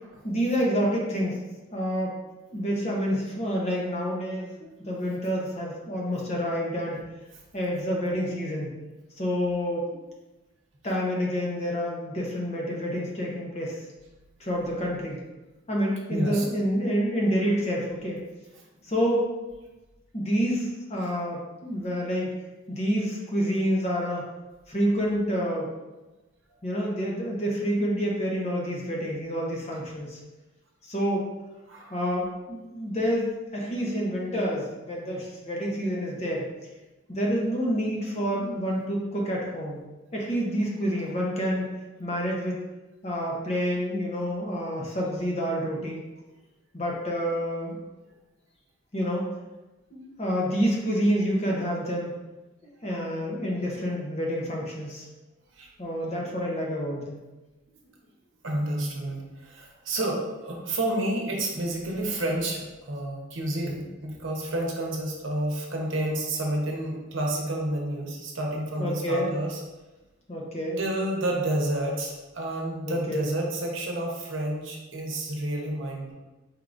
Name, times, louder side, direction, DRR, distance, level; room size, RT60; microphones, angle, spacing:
voice 1, 0.2-1.4 1.7-2.1 2.5-4.5 4.9-7.0 7.5-8.7 9.2-10.1 10.8-13.8 14.4-15.2 15.7-18.2 18.9-19.3 20.1-22.3 22.7-24.3 24.7-25.7 26.6-30.2 30.8-31.3 31.9-36.5 37.1-39.8 40.1-41.7 42.0-42.6 43.0-46.0 46.7-47.8 48.9-49.3 49.9-52.2 52.8-55.1 55.8-57.2 68.8-69.3 70.3-70.8 72.8-73.3, equal, 30° left, -2 dB, 0.8 m, -28 dB
voice 2, 16.1-16.4 21.0-21.1 31.7-32.0 40.9-41.1 55.5-55.7 57.8-57.9 58.4-69.6 70.8-76.1, right 1 dB, 65° right, -1 dB, 0.8 m, -30 dB
4.5 x 3.7 x 2.5 m, 1.1 s
head